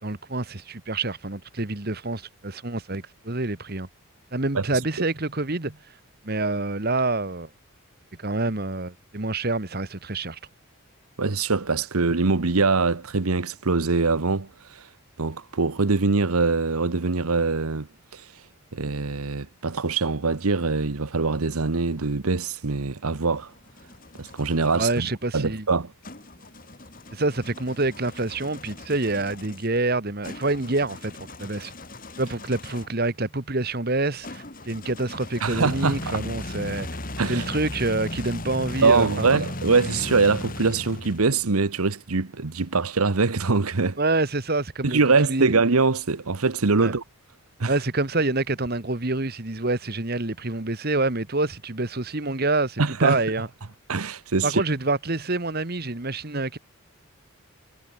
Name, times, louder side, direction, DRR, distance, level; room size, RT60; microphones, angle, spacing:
voice 1, 0.0-3.9 4.3-5.8 6.2-7.5 8.2-10.4 24.7-25.7 27.1-31.7 32.2-36.9 37.3-39.3 44.0-45.5 46.8-46.9 47.7-53.5 54.4-56.6, right 2 dB, 45° right, 1.5 m, -27 dB
voice 2, 11.2-14.9 15.2-17.9 18.1-18.3 18.7-23.5 24.2-25.1 25.3-25.9 35.4-36.2 37.2-37.5 38.8-44.0 44.8-47.0 47.6-47.7 52.8-53.2 53.9-54.6, right 4 dB, 85° right, 1.1 m, -23 dB
VW Old Timer Car Start, 23.4-25.1 26.0-33.0 34.2-41.5, left 1 dB, 40° left, 3.1 m, -37 dB
head